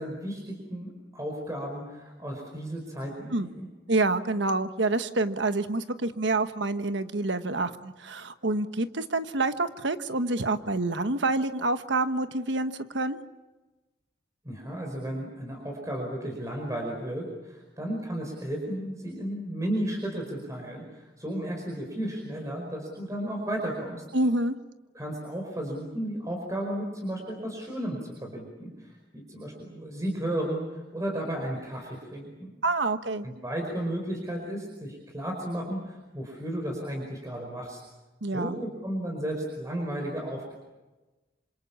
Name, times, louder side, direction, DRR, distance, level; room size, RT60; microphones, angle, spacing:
voice 1, 0.0-3.7 14.4-24.0 24.9-32.5 33.2-37.8 38.3-40.5, right 1 dB, 20° right, 0 dB, 5.2 m, -34 dB
voice 2, 3.9-13.2 24.1-24.5 32.6-33.3 38.2-38.6, right 2 dB, 75° right, 10 dB, 1.3 m, -27 dB
27.5 x 26.5 x 7.2 m, 1.1 s
head